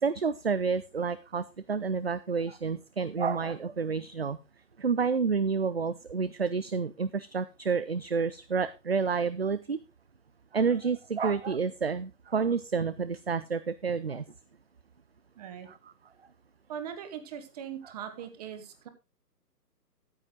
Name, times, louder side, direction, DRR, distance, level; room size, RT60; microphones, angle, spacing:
voice 1, 0.0-4.4 4.8-9.8 10.5-14.2 15.7-15.9 17.8-17.9, right 5 dB, 40° right, 14 dB, 0.5 m, -29 dB
voice 2, 15.4-15.7 16.7-18.9, right 8 dB, 25° right, 8 dB, 1.6 m, -40 dB
14.0 x 8.3 x 3.8 m, 0.27 s
figure-of-eight pair, 140°, 49 cm